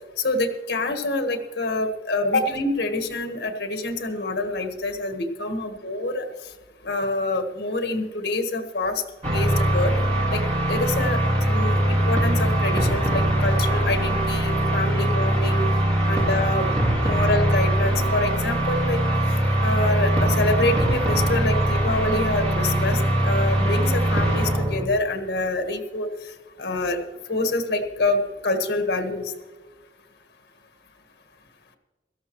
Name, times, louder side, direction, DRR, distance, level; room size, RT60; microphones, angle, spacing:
voice 1, 0.2-6.3 6.8-9.0 9.3-9.9 10.3-10.4 10.7-11.2 11.5-15.7 16.0-16.7 17.0-19.0 19.6-26.1 26.6-27.0 27.3-29.3, left 2 dB, 70° left, 6 dB, 1.5 m, -26 dB
sound 1, 9.2-24.8, right 1 dB, 35° right, 2.1 m, -22 dB
17.5 x 13.5 x 3.1 m, 1.3 s
head